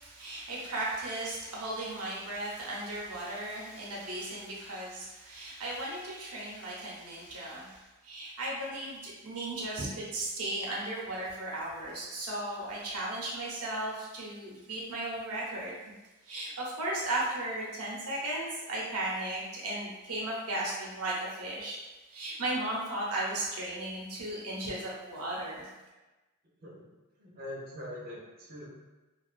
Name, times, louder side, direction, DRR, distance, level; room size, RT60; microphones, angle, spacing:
voice 1, 0.0-15.8 16.2-21.8 22.1-25.7, right 1 dB, 90° right, -5 dB, 0.7 m, -36 dB
voice 2, 27.2-28.7, left 1 dB, 40° right, -6 dB, 0.6 m, -43 dB
2.4 x 2.3 x 2.4 m, 1.1 s
head